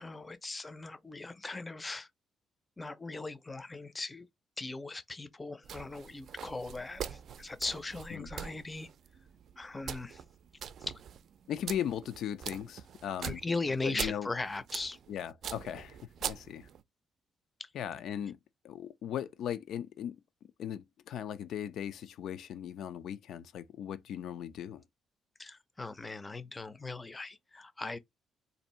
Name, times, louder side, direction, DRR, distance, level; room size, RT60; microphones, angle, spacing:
voice 1, 0.0-2.1 2.8-4.3 4.6-8.9 9.6-10.2 10.8-10.9 13.2-15.0 17.6-17.7 25.4-28.0, left 3 dB, 20° left, 0.5 m, -39 dB
sound 1, 5.6-16.8, right 8 dB, 65° right, 0.4 m, -43 dB
voice 2, 11.5-13.4 13.8-14.3 15.1-16.0 16.2-16.7 17.7-18.4 18.6-20.2 20.6-24.8, left 9 dB, 75° left, 0.4 m, -38 dB
2.6 x 2.5 x 4.2 m
cardioid pair, 90°, 0 cm